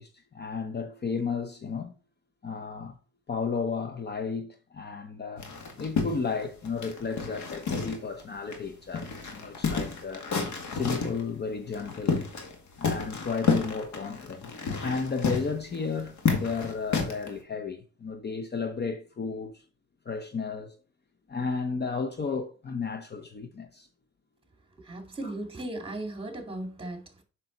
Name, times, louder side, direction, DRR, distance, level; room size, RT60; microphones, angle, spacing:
voice 1, 0.0-1.9 2.4-3.0 3.3-5.5 5.8-10.3 10.7-12.3 12.8-19.6 20.1-20.8 21.3-23.9, left 5 dB, 35° left, 0.9 m, -33 dB
sound 1, 5.4-8.2 8.5-8.6 8.9-11.2 11.7-12.5 12.8-17.3, left 4 dB, 70° left, 2.1 m, -30 dB
voice 2, 24.8-27.2, right 1 dB, 20° right, 2.5 m, -37 dB
7.4 x 6.1 x 4.0 m
cardioid pair, 90°, 30 cm